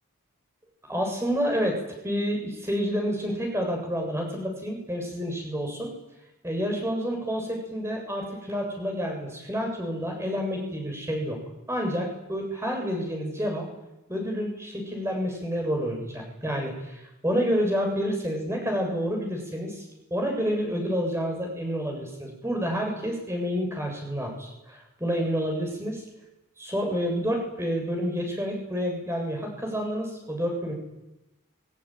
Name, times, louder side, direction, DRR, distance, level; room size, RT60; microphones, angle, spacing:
voice 1, 0.9-5.9 6.4-11.4 11.7-13.7 14.1-19.8 20.1-26.0 26.6-30.7, equal, 10° right, 1 dB, 7.9 m, -29 dB
23.0 x 22.5 x 9.4 m, 0.92 s
head